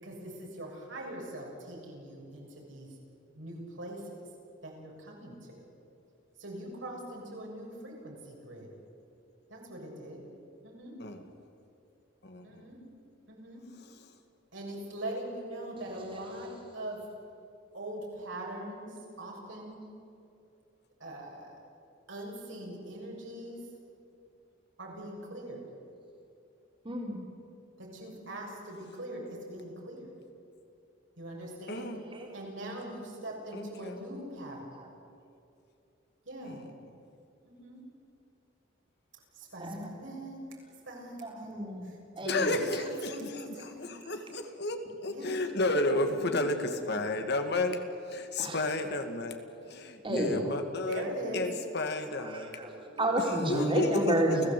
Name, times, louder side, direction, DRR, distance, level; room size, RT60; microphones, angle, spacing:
voice 1, 0.0-2.9 3.3-4.2 4.6-5.6 6.4-8.7 9.5-10.2 10.6-10.9 12.4-12.8 13.3-13.6 14.5-17.0 17.7-18.9 19.2-19.8 21.0-21.6 22.1-23.6 24.8-25.6 27.8-30.1 31.2-31.9 32.3-34.8 36.3-36.6 37.4-37.8 39.3-40.4 40.9-41.5 41.8-42.3 42.7-43.9 45.1-45.4 46.0-47.0 50.9-51.5, right 1 dB, 70° right, -1 dB, 6.9 m, -42 dB
voice 2, 12.2-12.6 31.7-32.0 33.5-33.9 42.3-42.8 44.1-47.8 48.1-49.4 49.7-51.1 51.3-52.5 52.9-54.2, left 2 dB, 60° left, 6 dB, 2.1 m, -32 dB
voice 3, 15.8-16.3 19.5-19.6 26.8-27.2 32.0-32.3 34.4-34.9 39.6-39.9 41.2-43.0 48.4-48.6 50.0-50.5 52.2-54.5, right 1 dB, 25° right, 0 dB, 4.0 m, -32 dB
29.5 x 16.5 x 8.5 m, 2.7 s
head